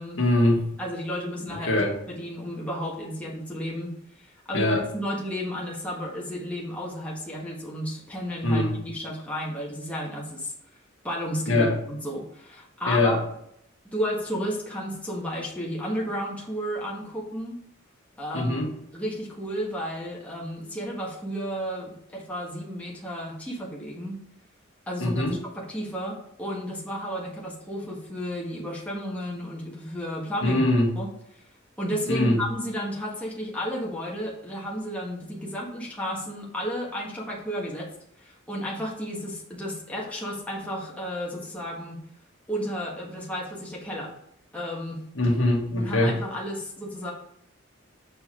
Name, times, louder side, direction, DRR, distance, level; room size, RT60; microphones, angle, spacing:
voice 1, 0.2-0.6 1.7-1.9 4.5-4.8 8.4-8.8 11.5-11.7 12.8-13.1 18.3-18.7 25.0-25.4 30.4-30.9 32.1-32.4 45.1-46.1, left 1 dB, 75° left, 0 dB, 1.5 m, -22 dB
voice 2, 0.8-1.8 2.1-3.9 4.2-10.5 11.0-13.2 13.9-17.6 18.2-18.7 18.9-24.2 24.9-30.6 30.9-31.1 31.3-31.4 31.8-37.9 38.2-42.0 42.5-44.1 44.5-45.0 45.8-47.1, equal, 5° left, -4 dB, 1.4 m, -32 dB
7.2 x 4.5 x 3.7 m, 0.71 s
head